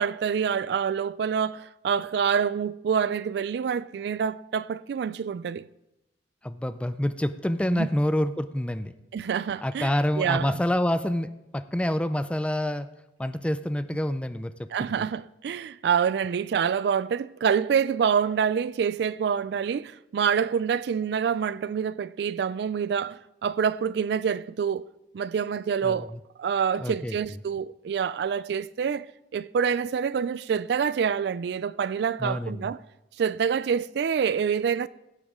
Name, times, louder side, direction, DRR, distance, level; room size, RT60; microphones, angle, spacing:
voice 1, 0.0-5.7 7.7-7.9 9.1-10.6 14.7-24.8 25.1-26.1 26.4-29.1 29.3-32.8 33.2-34.9, right 7 dB, 65° right, 0.3 m, -26 dB
voice 2, 6.4-8.9 9.6-12.9 13.2-14.5 25.8-26.1 26.8-27.2 32.2-32.7, left 1 dB, 5° left, 0.4 m, -27 dB
16.5 x 8.1 x 3.6 m
head